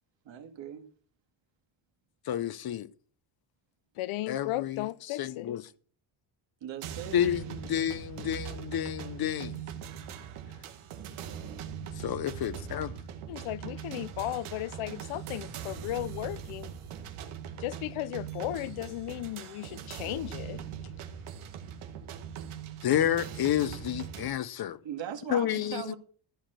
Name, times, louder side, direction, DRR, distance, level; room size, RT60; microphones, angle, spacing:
voice 1, 0.2-0.8 6.6-7.2 24.8-26.0, right 9 dB, 65° right, 2.2 m, -39 dB
voice 2, 2.3-2.9 4.3-4.8 5.2-5.6 7.1-9.6 12.0-12.9 22.8-24.8 25.3-25.9, left 11 dB, 50° left, 0.7 m, -30 dB
voice 3, 4.0-5.5 13.3-16.7 17.6-20.6, left 15 dB, 80° left, 0.8 m, -35 dB
sound 1, 6.8-24.3, right 8 dB, 80° right, 2.0 m, -41 dB
14.5 x 5.0 x 7.7 m
cardioid pair, 135°, 49 cm